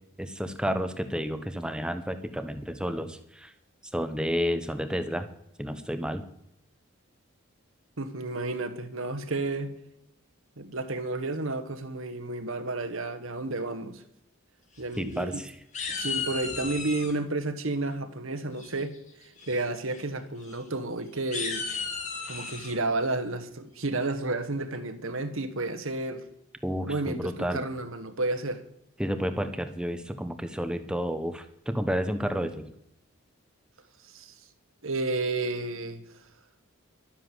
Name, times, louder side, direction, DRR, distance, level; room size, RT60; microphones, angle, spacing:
voice 1, 0.2-3.5 3.9-5.3 5.6-6.2 15.0-15.5 26.6-27.6 29.0-32.7, equal, 5° right, 0.9 m, -31 dB
voice 2, 8.0-9.7 10.6-14.0 14.8-15.4 15.9-18.9 19.2-21.7 22.3-26.2 26.9-28.6 34.0-34.3 34.8-36.0, right 2 dB, 70° right, 1.5 m, -31 dB
sound 1, 14.8-15.4 15.7-17.1 18.6-19.0 19.4-19.6 19.9-20.0 20.4-20.5 21.1-22.7, left 5 dB, 35° left, 2.6 m, -34 dB
12.5 x 10.0 x 7.8 m
head